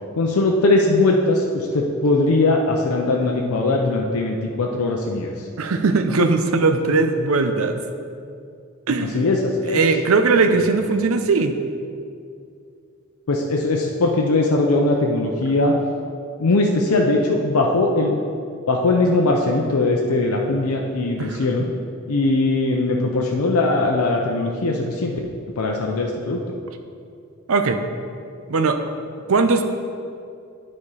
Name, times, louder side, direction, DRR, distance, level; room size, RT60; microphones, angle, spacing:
voice 1, 0.2-5.5 9.0-9.8 13.3-15.7 16.4-18.2 18.7-21.7 22.1-25.1 25.6-26.6, left 2 dB, 90° left, 0 dB, 0.6 m, -20 dB
voice 2, 5.6-7.8 8.9-9.2 9.7-11.6 21.2-21.4 27.5-27.8 28.5-28.8 29.3-29.6, right 3 dB, 70° right, 7 dB, 0.6 m, -19 dB
9.6 x 4.3 x 4.8 m, 2.4 s
head